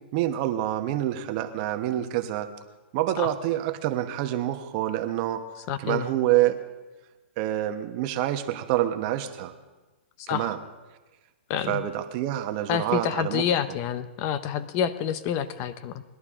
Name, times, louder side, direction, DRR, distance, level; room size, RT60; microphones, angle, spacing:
voice 1, 0.1-2.5 2.9-5.4 5.8-6.6 7.4-9.5 10.3-10.6 11.6-13.4, right 13 dB, 45° right, 8 dB, 1.1 m, -27 dB
voice 2, 5.7-6.1 10.3-10.5 11.5-11.8 12.7-16.0, left 9 dB, 40° left, 13 dB, 0.7 m, -28 dB
20.0 x 11.0 x 3.7 m, 1.2 s
hypercardioid pair, 130°, 6 cm